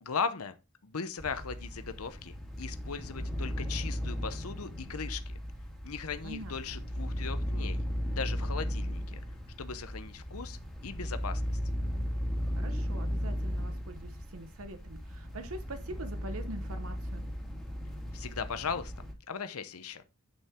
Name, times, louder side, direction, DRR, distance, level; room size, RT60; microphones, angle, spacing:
voice 1, 0.0-0.5 0.8-5.4 5.8-7.8 8.2-9.2 9.6-11.6 18.1-18.9 19.3-20.0, left 5 dB, 90° left, 0.8 m, -38 dB
sound 1, 1.2-19.1, equal, ahead, 2.3 m, -36 dB
voice 2, 6.2-6.7 12.4-17.2, right 1 dB, 75° right, 0.9 m, -44 dB
10.0 x 5.6 x 3.7 m
head